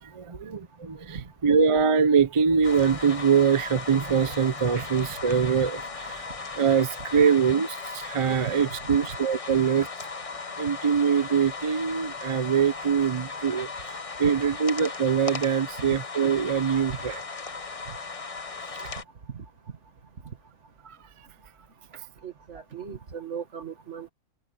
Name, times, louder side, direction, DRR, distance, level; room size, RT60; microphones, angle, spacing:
voice 1, 0.0-6.3 6.6-9.9 10.6-17.1 18.8-18.9 20.8-21.0, right 6 dB, 35° right, 0.6 m, -24 dB
sound 1, 2.6-19.0, left 4 dB, 30° left, 1.0 m, -37 dB
voice 2, 22.2-24.1, right 7 dB, 70° right, 2.1 m, -37 dB
omnidirectional pair, 1.3 m